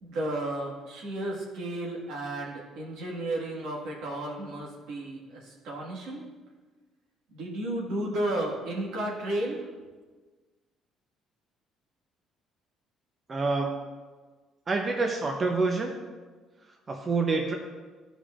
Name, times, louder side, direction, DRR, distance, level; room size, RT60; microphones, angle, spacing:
voice 1, 0.0-6.3 7.3-9.7, right 1 dB, 75° right, -3 dB, 1.8 m, -33 dB
voice 2, 13.3-13.8 14.7-15.9 16.9-17.5, right 3 dB, 30° right, 2 dB, 0.7 m, -27 dB
12.5 x 5.0 x 2.5 m, 1.4 s
cardioid pair, 105°, 0 cm